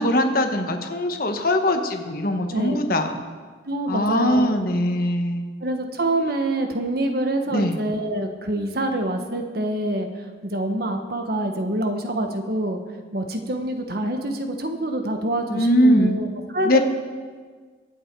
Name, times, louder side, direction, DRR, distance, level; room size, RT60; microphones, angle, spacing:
voice 1, 0.0-3.1 3.9-5.4 7.5-7.8 15.5-16.2 16.6-16.8, left 1 dB, 50° left, 5 dB, 1.3 m, -21 dB
voice 2, 2.5-2.9 3.6-4.7 5.6-10.1 10.4-12.8 13.1-16.3 16.5-16.8, right 1 dB, 55° right, 5 dB, 1.4 m, -26 dB
23.5 x 8.2 x 4.7 m, 1.5 s
head